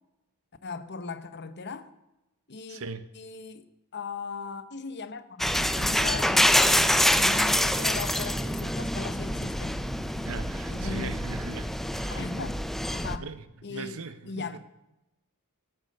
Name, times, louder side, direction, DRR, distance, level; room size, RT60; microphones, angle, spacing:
voice 1, 0.6-1.9 2.5-2.8 3.1-9.8 10.7-11.1 12.1-12.6 12.9-13.3 13.6-14.6, left 4 dB, 50° left, 1.0 m, -38 dB
voice 2, 2.7-3.1 10.2-12.3 13.2-13.4 13.7-14.6, right 4 dB, 65° right, 1.0 m, -40 dB
sound 1, 5.4-13.2, equal, ahead, 0.5 m, -26 dB
14.0 x 9.2 x 6.6 m
head